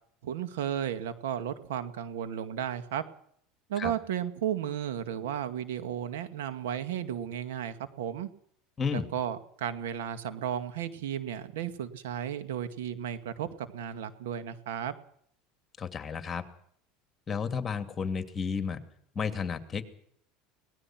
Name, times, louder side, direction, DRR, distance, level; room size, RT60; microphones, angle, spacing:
voice 1, 0.2-3.0 3.7-8.3 8.9-14.9, right 9 dB, 90° right, 10 dB, 2.2 m, -34 dB
voice 2, 8.8-9.1 15.8-16.4 17.3-18.8 19.1-19.8, left 6 dB, 25° left, 8 dB, 2.6 m, -32 dB
24.0 x 18.5 x 6.2 m, 0.64 s
supercardioid pair, 115°, 0 cm